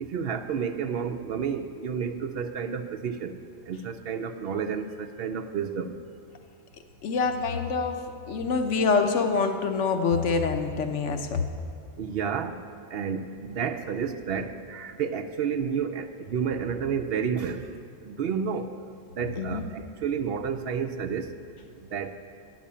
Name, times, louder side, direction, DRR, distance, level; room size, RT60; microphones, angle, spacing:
voice 1, 0.0-3.4 3.7-6.0 12.0-12.6 12.9-18.8 19.1-21.3 21.8-22.2, right 7 dB, 65° right, 8 dB, 0.7 m, -31 dB
voice 2, 7.0-8.0 8.3-11.4 19.4-19.6, left 4 dB, 75° left, 6 dB, 1.1 m, -25 dB
9.8 x 6.2 x 8.4 m, 2.2 s
omnidirectional pair, 1.2 m